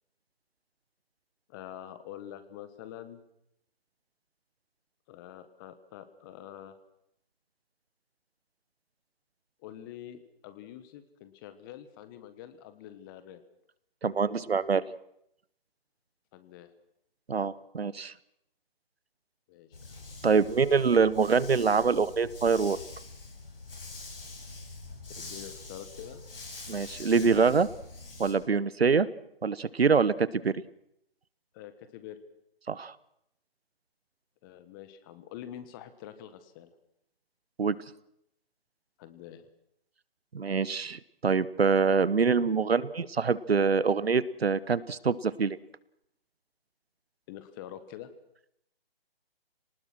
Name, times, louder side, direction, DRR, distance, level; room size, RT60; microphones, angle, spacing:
voice 1, 1.5-3.2 5.1-6.8 9.6-13.4 16.3-16.7 19.5-19.9 25.2-26.2 31.5-32.2 34.4-36.7 39.0-39.4 47.3-48.1, left 11 dB, 20° left, 12 dB, 1.4 m, -46 dB
voice 2, 14.0-14.8 17.3-18.1 20.2-22.8 26.7-27.7 28.2-29.1 29.4-30.5 32.7-32.9 37.6-37.8 40.3-45.6, right 5 dB, 85° right, 19 dB, 1.1 m, -25 dB
Dog, 19.7-28.3, left 3 dB, 65° left, 7.6 m, -45 dB
27.5 x 19.0 x 6.1 m, 0.76 s
figure-of-eight pair, 150°, 30 cm